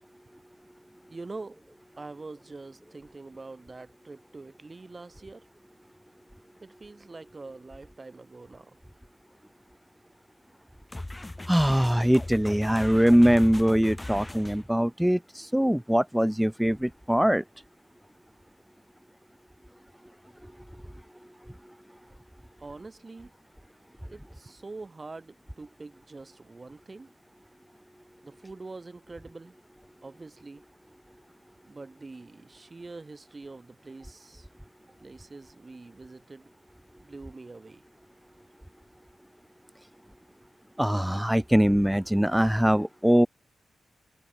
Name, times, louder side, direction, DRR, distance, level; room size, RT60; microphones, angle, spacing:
voice 1, 1.1-1.6 2.0-5.4 6.6-8.8 22.6-23.3 24.1-27.1 28.2-29.5 30.0-30.6 31.7-34.5 35.0-36.5 37.0-37.8, right 3 dB, 35° right, 6.6 m, -44 dB
sound 1, 10.9-14.7, left 1 dB, 20° left, 1.5 m, -39 dB
voice 2, 11.5-17.4 40.8-43.3, equal, 5° right, 0.4 m, -22 dB
supercardioid pair, 45°, 0 cm